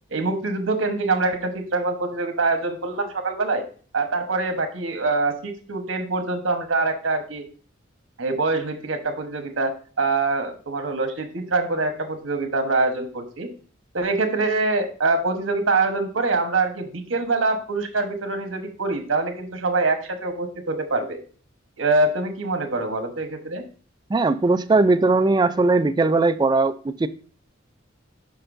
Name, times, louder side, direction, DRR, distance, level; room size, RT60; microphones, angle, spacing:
voice 1, 0.1-3.6 3.9-7.5 8.2-13.5 13.9-21.2 21.8-23.6, right 3 dB, 85° right, 1.1 m, -24 dB
voice 2, 24.1-27.1, right 3 dB, 20° right, 0.3 m, -19 dB
6.6 x 5.6 x 2.6 m
head